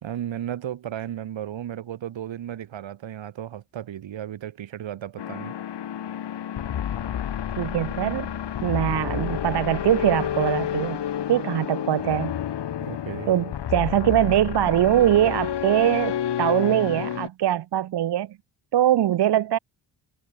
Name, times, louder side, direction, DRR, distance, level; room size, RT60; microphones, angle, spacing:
voice 1, 0.0-5.5 12.8-13.3, right 11 dB, 90° right, 3.0 m, -34 dB
sound 1, 5.2-17.3, left 10 dB, 65° left, 1.4 m, -30 dB
voice 2, 7.6-8.3 8.6-11.0 11.3-12.3 13.3-18.3 18.7-19.6, right 12 dB, 65° right, 0.7 m, -22 dB
cardioid pair, 90°, 44 cm